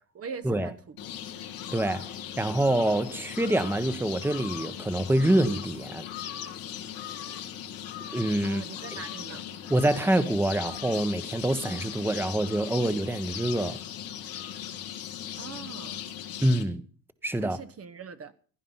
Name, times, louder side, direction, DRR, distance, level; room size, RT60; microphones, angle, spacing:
voice 1, 0.1-1.0 8.4-9.5 15.4-16.0 17.4-18.3, right 6 dB, 40° right, 1.2 m, -41 dB
sound 1, 1.0-16.6, left 10 dB, 80° left, 2.0 m, -38 dB
voice 2, 1.7-6.1 8.1-8.6 9.7-13.8 16.4-16.8 17.2-17.6, right 1 dB, 5° right, 1.2 m, -26 dB
16.5 x 10.5 x 5.7 m
supercardioid pair, 75°, 35 cm